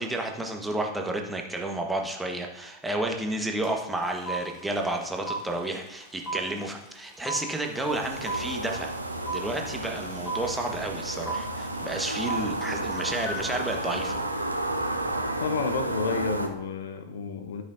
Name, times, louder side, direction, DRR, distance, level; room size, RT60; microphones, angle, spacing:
voice 1, 0.0-8.9 9.3-14.2, right 2 dB, 5° right, 2 dB, 1.2 m, -31 dB
sound 1, 3.6-3.7 3.9-15.1, right 2 dB, 30° left, 2.0 m, -36 dB
sound 2, 7.7-16.5, right 1 dB, 85° right, 0.7 m, -32 dB
voice 2, 15.4-17.6, left 5 dB, 60° left, 8 dB, 0.7 m, -31 dB
12.0 x 6.5 x 2.6 m, 0.93 s
figure-of-eight pair, 90°, 0 cm